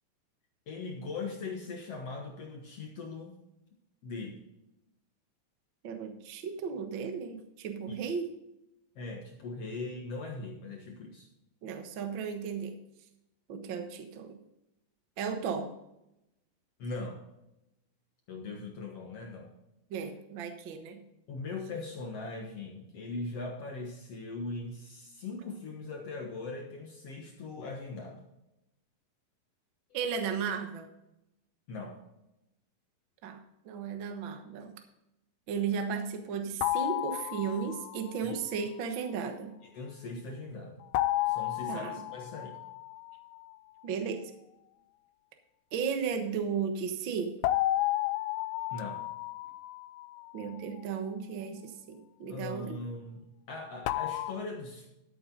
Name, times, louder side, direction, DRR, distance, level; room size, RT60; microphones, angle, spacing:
voice 1, 0.7-3.4 4.0-4.4 7.9-8.0 9.0-11.3 16.8-17.2 18.3-19.5 21.3-28.2 31.7-32.0 38.2-38.4 39.6-40.8 41.3-42.6 48.7-49.0 52.3-54.9, left 3 dB, 55° left, 1 dB, 1.9 m, -40 dB
voice 2, 5.8-8.3 11.6-12.8 13.5-14.4 15.2-15.7 19.9-21.0 29.9-30.9 33.2-34.7 35.5-39.5 41.7-42.0 43.8-44.3 45.7-47.3 50.3-52.8, right 6 dB, 70° right, 6 dB, 1.1 m, -35 dB
sound 1, 36.6-38.1 40.9-43.4 47.4-50.6 53.9-54.3, left 15 dB, 80° left, 2.0 m, -32 dB
13.0 x 8.7 x 3.9 m, 0.87 s
omnidirectional pair, 4.2 m